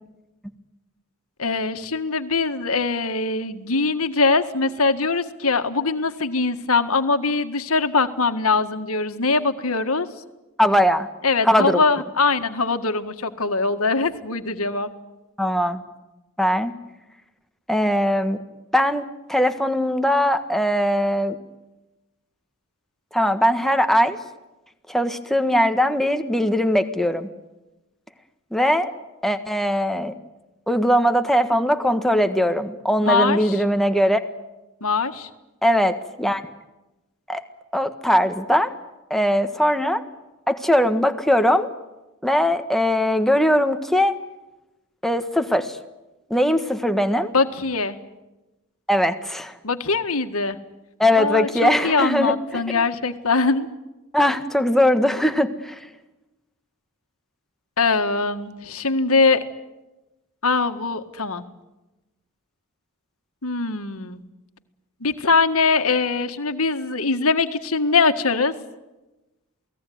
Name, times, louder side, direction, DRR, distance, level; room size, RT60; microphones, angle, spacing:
voice 1, 1.4-10.1 11.2-14.9 33.0-33.6 34.8-35.3 47.3-48.0 49.6-50.6 51.2-53.7 57.8-59.4 60.4-61.4 63.4-64.2 65.0-68.5, left 4 dB, 75° left, 8 dB, 1.8 m, -22 dB
voice 2, 10.6-11.1 11.4-11.8 15.4-15.8 16.4-16.7 17.7-18.4 18.7-19.0 19.3-21.4 23.1-24.2 24.9-27.3 28.5-28.9 29.2-30.1 30.7-34.2 35.6-36.4 37.3-37.4 37.7-38.7 39.1-40.0 40.5-41.7 42.2-44.1 45.0-45.7 46.3-47.3 48.9-49.5 51.0-52.4 54.1-55.8, equal, ahead, 7 dB, 1.5 m, -20 dB
28.5 x 18.5 x 9.5 m, 1.0 s
head